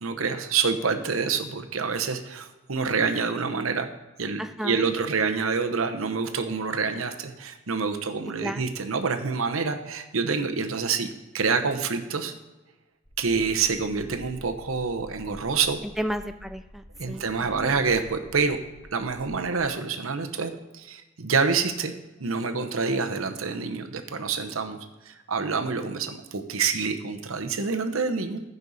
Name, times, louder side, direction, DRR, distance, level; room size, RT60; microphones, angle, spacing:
voice 1, 0.0-3.9 4.2-11.1 11.3-12.3 13.2-15.8 17.0-18.6 18.9-21.9 22.2-24.8 25.1-28.4, right 5 dB, 85° right, 7 dB, 0.9 m, -27 dB
voice 2, 4.4-4.9 8.4-8.7 16.0-17.7, equal, ahead, 8 dB, 0.3 m, -33 dB
sound 1, 13.0-19.6, equal, 20° left, 1.8 m, -48 dB
15.0 x 5.4 x 4.1 m, 1.1 s
head